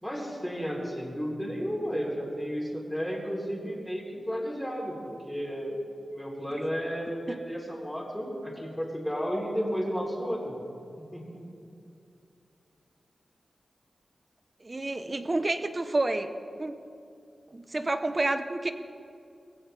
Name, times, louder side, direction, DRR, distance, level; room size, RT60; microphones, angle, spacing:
voice 1, 0.0-5.8 6.1-10.5 11.1-11.2, equal, 5° left, -4 dB, 3.7 m, -33 dB
voice 2, 14.6-16.3 16.6-16.8 17.5-18.7, right 2 dB, 30° right, 9 dB, 1.0 m, -29 dB
20.5 x 16.5 x 3.4 m, 2.5 s
wide cardioid pair, 75°, 0 cm